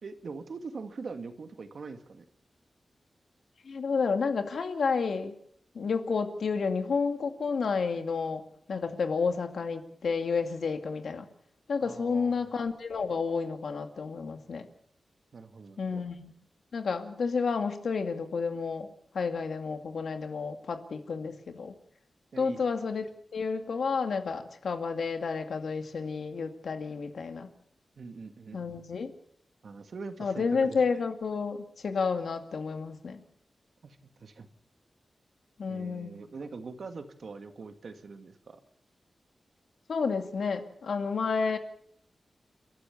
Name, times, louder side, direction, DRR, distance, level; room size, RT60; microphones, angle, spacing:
voice 1, 0.0-2.2 11.8-12.5 15.3-16.0 22.3-22.6 28.0-28.8 29.6-30.8 33.8-34.5 35.7-38.6, right 4 dB, 65° right, 8 dB, 2.0 m, -43 dB
voice 2, 3.7-5.3 5.7-8.4 8.7-11.3 11.7-14.7 15.8-16.3 16.7-18.9 19.1-21.7 22.4-23.0 23.3-27.5 28.5-29.1 30.2-33.2 35.6-36.2 39.9-41.6, left 5 dB, 80° left, 7 dB, 2.2 m, -30 dB
30.0 x 13.0 x 7.1 m, 0.64 s
wide cardioid pair, 140°, 0 cm